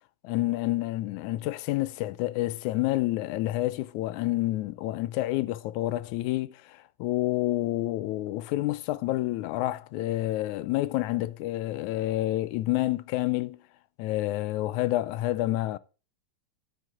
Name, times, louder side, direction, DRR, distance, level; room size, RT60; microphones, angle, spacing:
voice 1, 0.2-13.6 14.0-15.8, left 16 dB, 80° left, 2.0 m, -29 dB
12.5 x 7.9 x 3.7 m
omnidirectional pair, 3.5 m